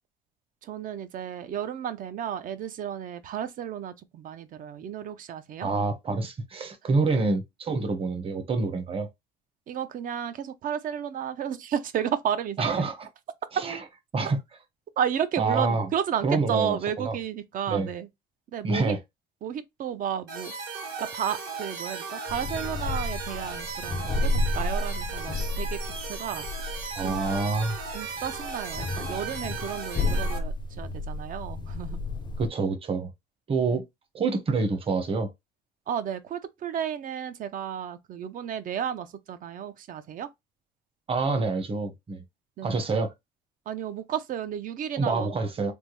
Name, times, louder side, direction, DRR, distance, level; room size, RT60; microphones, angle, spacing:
voice 1, 0.6-5.7 9.7-12.9 15.0-18.1 18.5-19.0 19.4-20.5 21.0-26.5 27.0-27.2 27.9-32.0 33.7-33.8 35.9-40.3 42.6-42.8 43.7-45.3, right 9 dB, 55° right, 0.6 m, -32 dB
voice 2, 5.6-9.1 12.6-13.1 13.6-13.8 14.1-14.4 15.4-15.9 16.2-17.1 17.7-17.9 18.6-19.0 27.0-27.8 32.4-33.1 33.5-33.8 34.1-35.3 41.1-42.2 42.6-43.1 45.0-45.7, right 3 dB, 35° right, 1.0 m, -27 dB
sound 1, 20.3-30.4, right 5 dB, 75° right, 1.8 m, -36 dB
sound 2, 22.3-32.5, left 2 dB, 25° left, 0.4 m, -32 dB
3.4 x 2.1 x 3.0 m
cardioid pair, 110°, 17 cm